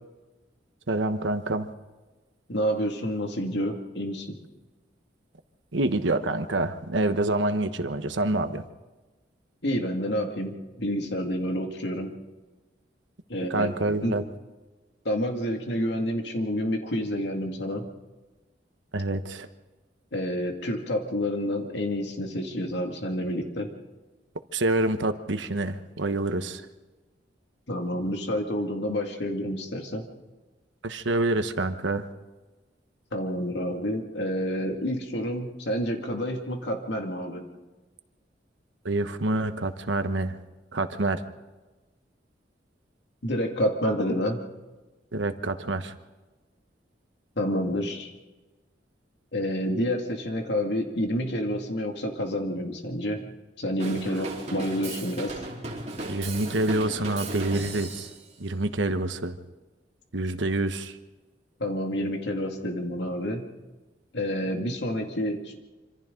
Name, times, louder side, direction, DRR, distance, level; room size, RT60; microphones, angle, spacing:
voice 1, 0.9-1.7 5.7-8.6 13.5-14.2 18.9-19.5 24.5-26.6 30.8-32.0 38.8-40.4 40.7-41.2 45.1-45.9 56.1-58.1 58.4-59.3 60.1-61.0, right 2 dB, 85° right, 10 dB, 1.2 m, -27 dB
voice 2, 2.5-4.4 9.6-12.1 13.3-13.7 14.0-14.1 15.0-17.9 20.1-23.7 27.7-30.0 33.1-37.4 43.2-44.4 47.4-48.1 49.3-53.2 53.6-55.3 61.6-63.4 64.1-65.6, equal, 65° left, 3 dB, 2.3 m, -29 dB
Drum kit / Drum, 53.8-58.2, right 2 dB, 40° right, 4.0 m, -36 dB
26.0 x 25.5 x 3.9 m, 1.2 s
head